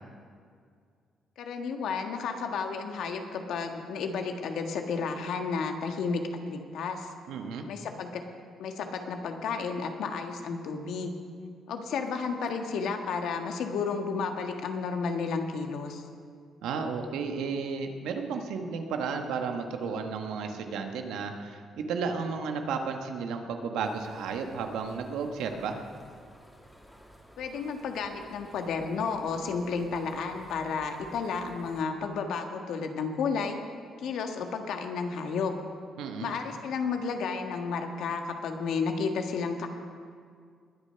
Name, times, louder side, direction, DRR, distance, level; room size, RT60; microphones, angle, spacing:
voice 1, 1.4-6.2 6.5-7.1 7.7-8.2 8.6-11.2 11.7-16.0 27.4-33.6 34.0-35.5 36.2-39.7, left 5 dB, 80° left, 5 dB, 1.6 m, -32 dB
voice 2, 7.3-7.7 16.6-25.8 36.0-36.3, right 5 dB, 90° right, 5 dB, 1.3 m, -33 dB
sound 1, 23.8-31.8, equal, 5° left, 2.2 m, -54 dB
21.0 x 8.6 x 5.7 m, 2.1 s
cardioid pair, 90°, 0 cm